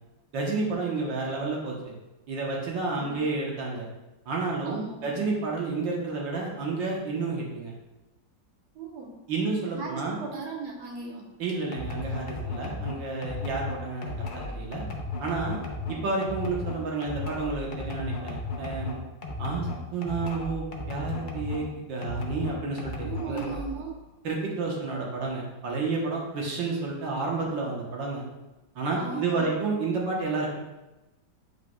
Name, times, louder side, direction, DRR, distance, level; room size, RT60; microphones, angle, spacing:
voice 1, 0.3-1.9 2.3-3.9 4.3-7.7 9.3-10.2 11.4-14.8 15.2-15.6 15.9-19.0 19.4-23.5 24.2-28.2 28.8-30.6, right 3 dB, 75° right, -2 dB, 1.9 m, -30 dB
voice 2, 4.6-5.2 8.7-9.2 9.8-11.3 23.0-24.0 29.0-29.5, right 4 dB, 60° right, 0 dB, 1.6 m, -37 dB
sound 1, 11.7-21.7 22.0-23.8, left 3 dB, 70° left, 0.4 m, -35 dB
8.6 x 5.4 x 2.3 m, 1.0 s
omnidirectional pair, 2.0 m